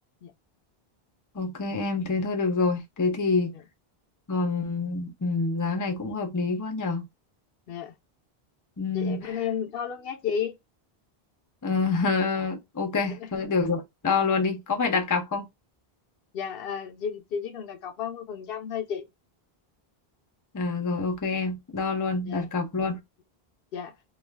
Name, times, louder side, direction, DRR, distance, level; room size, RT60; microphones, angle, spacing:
voice 1, 1.3-3.5 4.3-7.0 8.8-9.2 11.6-15.5 20.5-23.0, left 4 dB, 25° left, 0.5 m, -27 dB
voice 2, 8.9-10.6 13.1-13.3 16.3-19.0 22.2-22.5 23.7-24.0, left 7 dB, 70° left, 0.7 m, -33 dB
2.4 x 2.3 x 3.2 m
omnidirectional pair, 1.0 m